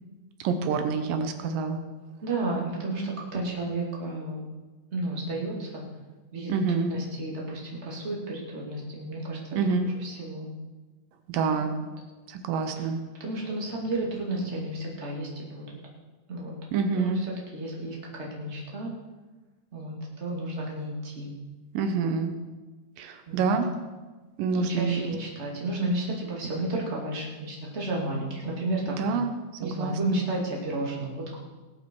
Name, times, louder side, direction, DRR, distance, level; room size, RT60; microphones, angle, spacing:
voice 1, 0.4-1.8 6.5-6.9 9.5-9.9 11.3-11.7 12.3-13.0 16.7-17.2 21.7-22.3 23.0-23.7 24.4-25.0 29.0-29.3 29.6-30.2, right 5 dB, 85° right, 7 dB, 2.7 m, -27 dB
voice 2, 2.2-4.4 4.9-5.8 6.3-6.5 6.9-9.4 9.6-10.5 12.8-12.9 13.2-15.7 16.3-16.5 16.9-18.9 19.7-21.3 23.3-23.5 24.5-29.1 29.6-31.4, right 2 dB, 20° right, -2 dB, 2.4 m, -32 dB
19.0 x 8.4 x 4.7 m, 1.3 s
omnidirectional pair, 3.9 m